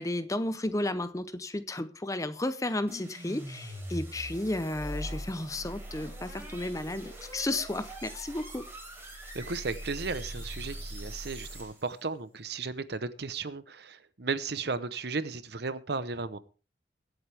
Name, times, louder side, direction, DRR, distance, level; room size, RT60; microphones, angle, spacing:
voice 1, 0.0-8.7, left 1 dB, 15° left, 0.7 m, -33 dB
sound 1, 2.9-12.0, equal, 10° right, 3.9 m, -41 dB
voice 2, 9.3-16.4, right 4 dB, 60° right, 0.9 m, -35 dB
23.0 x 7.9 x 3.5 m
head